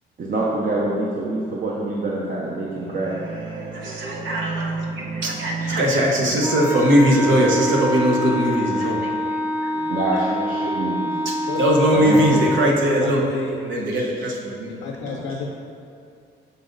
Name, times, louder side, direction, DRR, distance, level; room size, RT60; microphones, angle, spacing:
voice 1, 0.2-3.1 5.6-5.7 7.3-7.4 9.9-11.1 11.9-12.4 13.9-14.0 15.0-15.3, right 2 dB, 45° right, -4 dB, 0.8 m, -25 dB
voice 2, 2.7-9.2 9.6-9.9 11.2-11.3 11.6-13.2 13.7-14.8, equal, 70° right, -1 dB, 1.1 m, -21 dB
Wind instrument woodwind instrument, 6.4-12.8, equal, 10° right, 0.5 m, -26 dB
voice 3, 11.5-13.6 14.7-15.5, left 4 dB, 90° left, -1 dB, 0.6 m, -31 dB
6.8 x 4.1 x 3.9 m, 2.4 s
cardioid pair, 90°, 20 cm